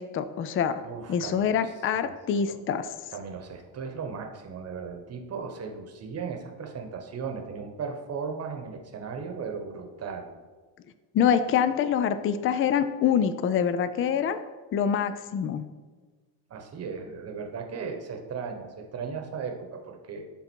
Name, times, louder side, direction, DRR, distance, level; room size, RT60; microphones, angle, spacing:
voice 1, 0.0-0.8 1.1-2.9 11.1-14.4 14.7-15.6, left 8 dB, 30° left, 12 dB, 0.4 m, -25 dB
voice 2, 0.8-2.1 2.5-2.6 3.1-10.3 16.5-20.2, right 5 dB, 35° right, 4 dB, 1.1 m, -37 dB
11.5 x 3.8 x 4.5 m, 1.3 s
cardioid pair, 135°, 42 cm